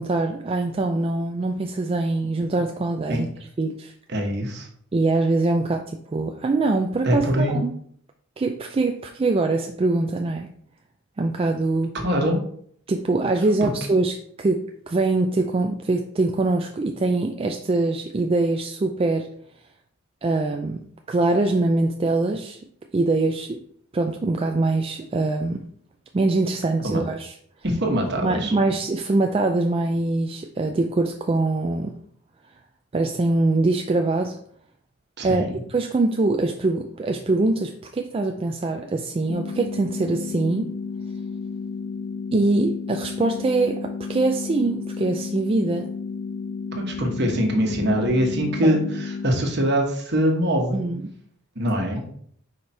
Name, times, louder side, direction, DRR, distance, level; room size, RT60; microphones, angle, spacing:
voice 1, 0.0-3.3 3.6-3.9 4.9-5.9 6.1-7.7 8.4-10.5 11.2-12.0 12.9-19.3 20.2-20.8 21.1-22.6 22.9-23.6 23.9-25.6 26.1-27.3 28.2-32.0 32.9-34.4 35.2-40.7 42.3-45.9 48.6-48.8 50.7-51.1, right 2 dB, 25° right, 4 dB, 0.3 m, -23 dB
voice 2, 4.1-4.7 7.0-7.6 12.0-12.4 13.6-13.7 26.8-27.0 27.6-28.5 35.2-35.5 46.7-50.9 51.6-52.0, equal, 55° right, 2 dB, 1.3 m, -23 dB
sound 1, 39.3-49.3, left 5 dB, 50° left, 0.4 m, -32 dB
4.9 x 4.6 x 4.2 m, 0.62 s
head